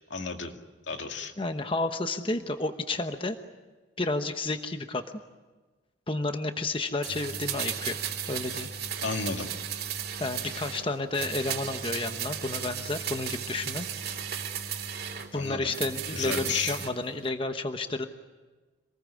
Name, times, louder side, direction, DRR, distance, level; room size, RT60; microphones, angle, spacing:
voice 1, 0.1-0.5 0.8-1.3 9.0-9.5 15.3-15.7 16.1-16.8, left 4 dB, 85° left, 4 dB, 2.3 m, -32 dB
voice 2, 1.4-3.4 4.0-5.2 6.1-8.0 8.3-8.7 10.2-13.9 15.3-18.0, left 2 dB, 30° left, 7 dB, 1.1 m, -31 dB
sound 1, 7.0-10.9 11.1-15.3 15.7-16.9 17.2-17.3, right 8 dB, 55° right, 2.8 m, -35 dB
27.5 x 20.5 x 8.5 m, 1.3 s
head